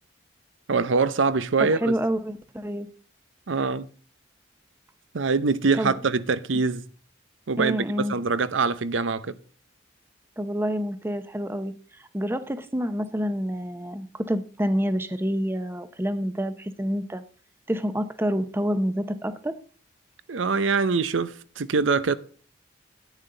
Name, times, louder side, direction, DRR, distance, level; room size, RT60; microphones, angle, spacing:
voice 1, 0.7-1.9 3.5-3.9 5.1-6.8 7.5-7.8 8.1-9.4 20.3-22.1, right 4 dB, 90° right, 0.7 m, -24 dB
voice 2, 1.6-2.9 5.8-6.0 7.6-8.2 10.4-17.2 17.7-19.5, equal, 10° right, 0.7 m, -28 dB
10.5 x 9.1 x 3.9 m
head